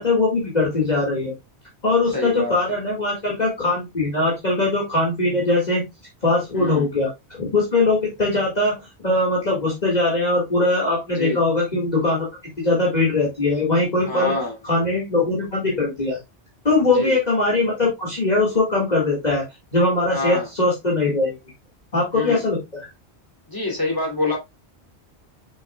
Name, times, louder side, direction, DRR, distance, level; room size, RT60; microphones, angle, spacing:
voice 1, 0.0-1.3 1.8-5.8 6.2-7.1 7.4-12.3 12.6-14.3 14.6-16.2 16.6-19.4 19.7-21.3 21.9-22.9, left 2 dB, 40° left, -4 dB, 2.2 m, -21 dB
voice 2, 2.1-2.5 6.5-6.9 11.1-11.4 14.1-14.5 16.9-17.2 20.1-20.5 22.1-22.4 23.5-24.4, left 2 dB, 20° left, -3 dB, 3.1 m, -25 dB
6.8 x 6.0 x 2.3 m, 0.21 s
omnidirectional pair, 1.1 m